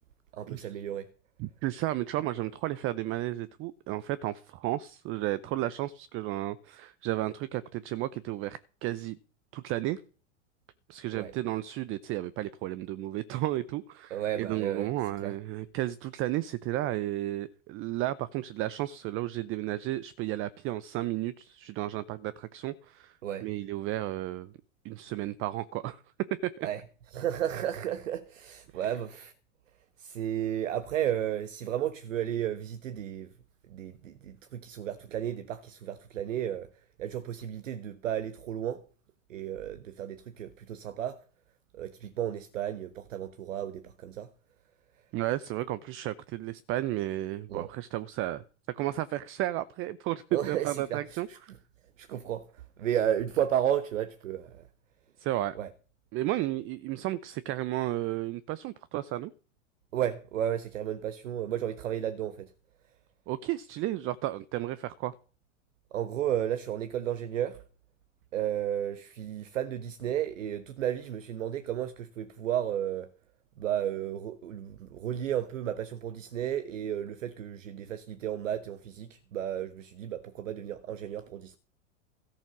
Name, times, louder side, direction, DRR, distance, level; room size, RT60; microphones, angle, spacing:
voice 1, 0.3-1.1 11.1-11.3 14.1-14.9 15.2-15.3 23.2-23.5 26.6-26.8 27.1-29.3 30.0-33.3 33.7-36.7 37.0-38.9 39.3-41.2 41.7-44.3 47.5-47.7 50.3-51.4 52.0-54.7 55.5-55.7 59.9-62.5 65.9-67.6 68.3-73.1 73.6-81.6, right 10 dB, 75° right, 1.1 m, -33 dB
voice 2, 1.4-9.2 9.5-10.0 10.9-24.5 24.8-26.0 26.3-26.7 45.1-48.4 48.7-51.5 55.2-55.6 56.1-59.3 63.3-65.1, right 15 dB, 35° right, 0.6 m, -33 dB
13.5 x 7.2 x 6.0 m
hypercardioid pair, 105°, 38 cm